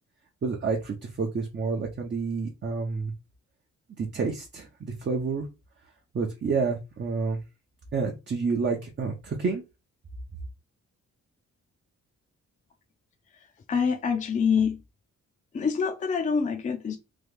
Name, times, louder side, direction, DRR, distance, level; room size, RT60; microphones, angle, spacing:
voice 1, 0.4-3.1 4.0-5.5 6.1-7.4 7.9-9.6, right 4 dB, 40° right, 0.7 m, -29 dB
voice 2, 13.7-14.8 15.5-17.0, left 6 dB, 25° left, 0.4 m, -25 dB
3.0 x 2.3 x 3.5 m
wide cardioid pair, 120°, 29 cm